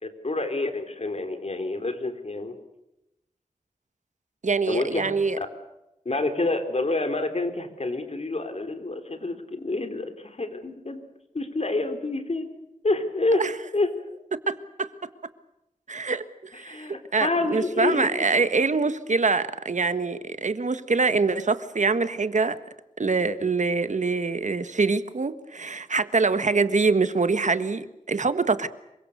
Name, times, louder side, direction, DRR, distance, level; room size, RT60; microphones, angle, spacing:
voice 1, 0.0-2.6 4.7-5.5 6.1-11.0 11.3-12.5 12.8-13.4 13.7-14.0 16.5-18.3, left 2 dB, 55° left, 7 dB, 3.9 m, -28 dB
voice 2, 4.4-5.4 13.4-13.5 14.5-14.9 15.9-16.8 17.1-22.6 23.0-28.7, right 4 dB, 65° right, 12 dB, 1.5 m, -24 dB
27.0 x 24.0 x 6.7 m, 0.90 s
wide cardioid pair, 65°, 13 cm